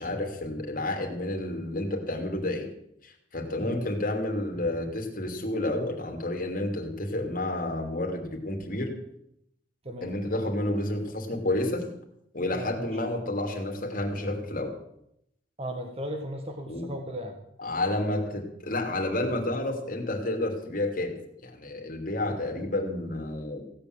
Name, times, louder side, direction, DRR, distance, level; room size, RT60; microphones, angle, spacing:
voice 1, 0.0-2.7 3.0-8.9 10.0-11.8 12.3-14.7 16.7-16.9 17.6-23.6, left 1 dB, 45° left, 2 dB, 2.9 m, -30 dB
voice 2, 12.5-12.9 15.6-17.4, equal, 30° right, 4 dB, 1.5 m, -36 dB
16.5 x 8.7 x 7.9 m, 0.76 s
head